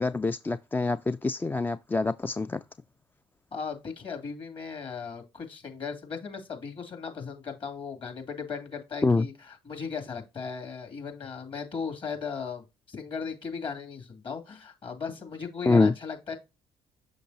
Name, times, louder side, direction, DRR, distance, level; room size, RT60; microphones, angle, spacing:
voice 1, 0.0-2.6 9.0-9.3 15.7-15.9, left 3 dB, 15° left, 0.3 m, -25 dB
voice 2, 3.5-16.4, left 5 dB, 40° left, 2.5 m, -37 dB
6.5 x 5.7 x 2.7 m
hypercardioid pair, 50°, 13 cm